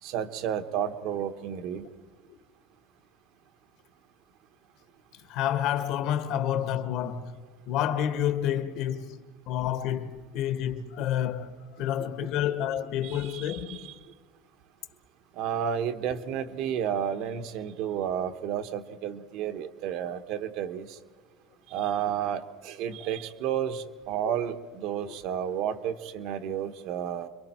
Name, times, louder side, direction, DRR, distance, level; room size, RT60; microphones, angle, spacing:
voice 1, 0.0-1.9 13.0-13.9 15.4-20.9 21.7-27.3, right 9 dB, 55° right, 1.2 m, -31 dB
voice 2, 5.3-7.3 7.7-9.2 9.5-11.5 11.8-13.9 23.0-23.1, left 10 dB, 55° left, 1.4 m, -29 dB
30.0 x 23.0 x 4.5 m
cardioid pair, 160°, 0 cm